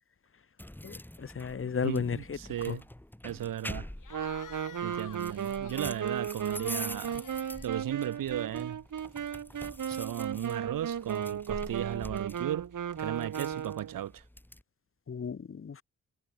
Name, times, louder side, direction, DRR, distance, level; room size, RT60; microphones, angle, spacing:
sound 1, 0.6-14.6, left 1 dB, 5° left, 4.3 m, -46 dB
voice 1, 0.8-2.2 2.7-2.8 15.1-15.8, left 6 dB, 40° left, 1.2 m, -33 dB
voice 2, 1.8-2.8 3.2-3.9 4.8-7.2 7.6-8.8 9.9-12.7 13.0-14.2, right 11 dB, 85° right, 5.1 m, -35 dB
Cheering / Crowd, 4.0-8.6, left 8 dB, 70° left, 7.7 m, -51 dB
Wind instrument woodwind instrument, 4.1-14.0, right 8 dB, 65° right, 3.4 m, -35 dB
cardioid pair, 60°, 33 cm